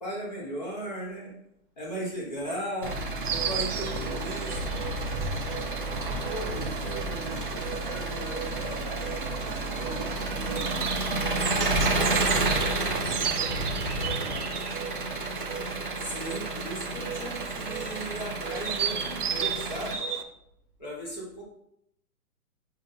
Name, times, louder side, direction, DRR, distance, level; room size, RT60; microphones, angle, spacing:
voice 1, 0.0-1.3 1.8-4.8 16.0-20.0 20.8-21.4, right 1 dB, 30° left, -3 dB, 1.2 m, -36 dB
Engine, 2.8-19.9, right 2 dB, 35° right, 0.4 m, -31 dB
Insect, 3.2-20.2, right 7 dB, 80° right, 1.0 m, -35 dB
voice 2, 6.3-9.3 9.8-11.9 12.4-14.6, equal, ahead, -14 dB, 1.1 m, -42 dB
5.4 x 4.9 x 3.7 m, 0.73 s
hypercardioid pair, 180°, 45 cm